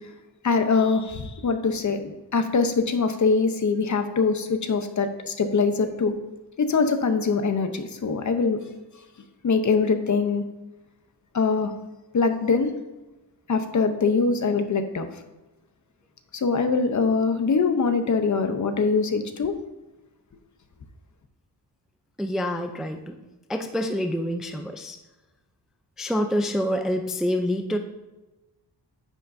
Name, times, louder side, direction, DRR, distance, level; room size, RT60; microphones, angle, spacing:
voice 1, 0.4-6.1 6.6-8.6 9.4-10.4 11.3-11.7 12.1-12.7 13.5-15.1 16.3-19.6, left 4 dB, 45° left, 8 dB, 0.7 m, -23 dB
voice 2, 22.2-23.2 23.5-25.0 26.0-27.8, equal, ahead, 5 dB, 0.4 m, -27 dB
9.7 x 7.8 x 2.6 m, 1.1 s
wide cardioid pair, 160°, 42 cm